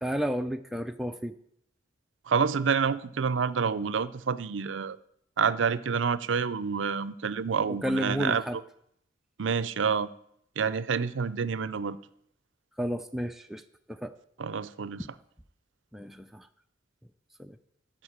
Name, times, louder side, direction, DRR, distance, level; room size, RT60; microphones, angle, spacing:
voice 1, 0.0-1.4 7.7-8.6 12.8-13.6 13.9-14.1 15.0-15.1 15.9-16.5 17.4-17.6, equal, ahead, 0.4 m, -32 dB
voice 2, 2.3-5.0 5.4-8.4 9.4-10.1 10.6-12.0 14.4-15.0, right 6 dB, 80° right, 0.5 m, -28 dB
12.5 x 5.5 x 8.7 m
head